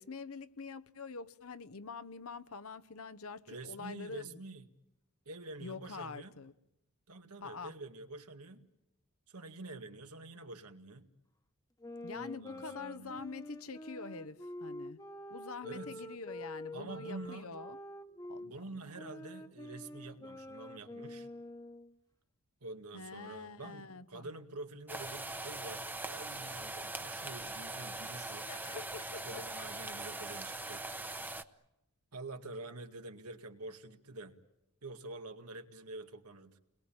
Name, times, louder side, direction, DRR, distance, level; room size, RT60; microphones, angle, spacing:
voice 1, 0.0-4.4 5.6-6.5 7.4-7.7 12.0-15.0 15.3-17.8 18.3-18.6 22.9-24.4 28.4-29.4, left 4 dB, 65° left, 1.0 m, -45 dB
voice 2, 3.5-4.6 5.3-6.3 7.1-8.7 9.3-11.1 12.1-13.1 15.6-16.0 16.7-17.5 18.4-21.3 22.6-28.5 29.3-30.8 32.1-34.3 34.8-36.6, right 2 dB, 90° right, 2.1 m, -47 dB
sound 1, 11.8-18.5 19.0-21.9, left 1 dB, 15° left, 1.2 m, -47 dB
sound 2, 24.9-31.4, right 2 dB, 10° right, 1.0 m, -41 dB
29.5 x 21.5 x 8.8 m
head